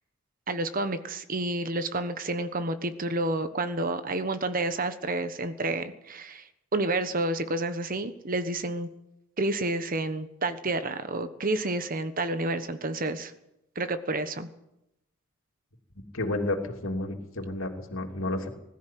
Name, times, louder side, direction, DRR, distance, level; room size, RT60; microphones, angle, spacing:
voice 1, 0.5-8.9 9.4-13.3 13.7-14.5, right 2 dB, 40° right, 10 dB, 1.2 m, -30 dB
voice 2, 16.1-18.5, left 2 dB, 75° left, 3 dB, 3.0 m, -31 dB
20.5 x 13.5 x 9.4 m, 0.87 s
head